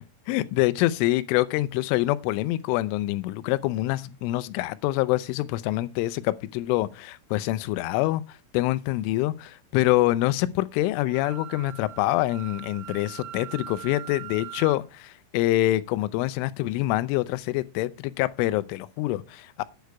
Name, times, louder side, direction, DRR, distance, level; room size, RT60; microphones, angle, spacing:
voice 1, 0.3-19.6, left 17 dB, 80° left, 3.1 m, -26 dB
Wind instrument woodwind instrument, 11.0-14.8, right 13 dB, 65° right, 3.2 m, -41 dB
9.2 x 8.5 x 4.7 m
omnidirectional pair, 5.7 m